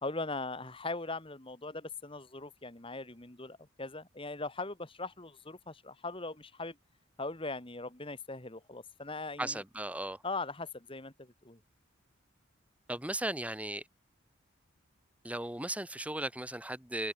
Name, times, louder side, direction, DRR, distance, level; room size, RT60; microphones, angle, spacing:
voice 1, 0.0-6.8 7.2-9.6 10.2-11.6, left 3 dB, 25° left, 2.1 m, -40 dB
voice 2, 9.4-10.2 12.9-13.8 15.2-17.1, right 1 dB, 5° right, 1.7 m, -36 dB
head